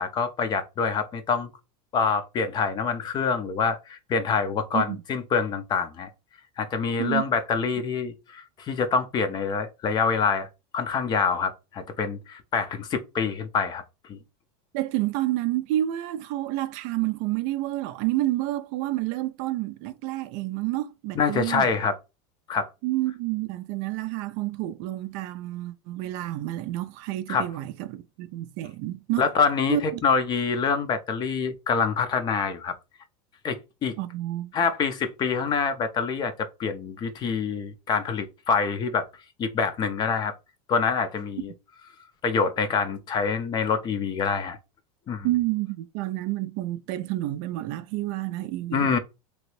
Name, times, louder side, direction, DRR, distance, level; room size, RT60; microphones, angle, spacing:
voice 1, 0.0-1.5 1.9-6.1 6.6-10.5 10.7-13.8 14.1-14.2 21.1-22.0 22.5-22.7 27.3-27.5 29.2-32.7 33.4-34.0 34.5-39.1 39.4-40.3 40.7-41.5 42.2-44.6 45.1-45.3 48.7-49.0, left 5 dB, 25° left, 0.5 m, -26 dB
voice 2, 14.7-21.7 22.8-29.2 29.7-30.0 34.0-34.5 45.2-49.0, right 16 dB, 50° right, 0.4 m, -29 dB
2.9 x 2.6 x 3.1 m
supercardioid pair, 145°, 16 cm